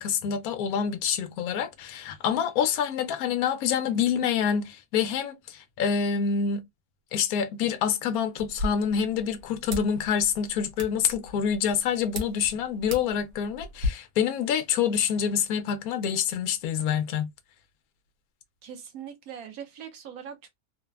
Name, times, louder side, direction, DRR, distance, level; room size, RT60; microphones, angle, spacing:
voice 1, 0.0-6.6 7.1-17.3, left 7 dB, 70° left, 1.1 m, -27 dB
sound 1, 8.4-13.9, left 2 dB, 90° right, 1.4 m, -37 dB
voice 2, 18.6-20.5, right 8 dB, 70° right, 1.2 m, -41 dB
3.3 x 2.1 x 2.2 m
omnidirectional pair, 1.7 m